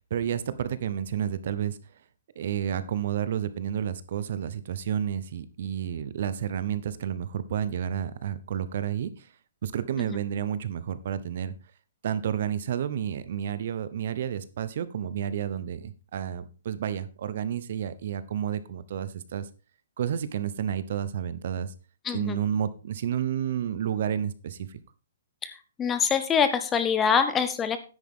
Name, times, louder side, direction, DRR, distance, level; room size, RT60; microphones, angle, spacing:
voice 1, 0.1-1.8 2.4-9.3 9.6-11.5 12.0-19.5 20.0-21.7 22.1-24.8, right 9 dB, 45° right, 15 dB, 0.8 m, -30 dB
voice 2, 22.1-22.4 25.4-25.5 25.8-27.8, left 7 dB, 10° left, 11 dB, 0.5 m, -24 dB
10.0 x 8.6 x 3.7 m, 0.34 s
hypercardioid pair, 175°, 0 cm